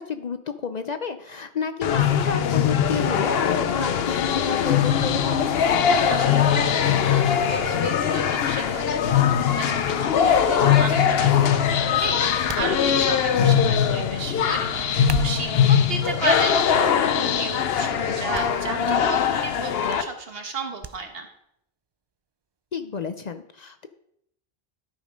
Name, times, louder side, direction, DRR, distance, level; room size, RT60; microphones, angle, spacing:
voice 1, 0.0-5.5 10.7-11.1 22.7-23.9, left 6 dB, 50° left, 9 dB, 0.6 m, -30 dB
sound 1, 1.8-20.0, left 8 dB, 75° left, 0.9 m, -21 dB
voice 2, 6.1-21.3, right 3 dB, 70° right, 5 dB, 1.6 m, -34 dB
sound 2, 12.5-13.3 14.9-15.6 16.4-16.8 17.2-17.3 18.3-18.5 18.8-18.9 20.8-21.0 21.3-21.4, right 5 dB, 40° right, 0.4 m, -35 dB
12.5 x 5.3 x 5.1 m, 0.73 s
omnidirectional pair, 1.0 m